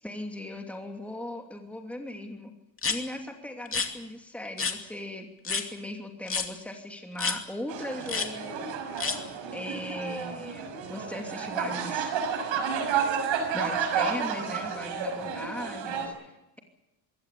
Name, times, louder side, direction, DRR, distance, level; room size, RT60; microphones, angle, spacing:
voice 1, 0.0-2.5 2.9-8.7 9.5-12.1 13.5-16.6, left 1 dB, 5° left, 2 dB, 2.8 m, -38 dB
sound 1, 2.8-3.0 3.7-3.9 4.6-4.8 5.4-5.7 6.3-6.5 7.2-7.4 8.1-8.3 9.0-9.2, left 5 dB, 30° left, 2.6 m, -28 dB
sound 2, 7.7-16.1, right 6 dB, 75° right, 6.3 m, -31 dB
22.0 x 17.0 x 8.5 m, 0.93 s
cardioid pair, 105°, 46 cm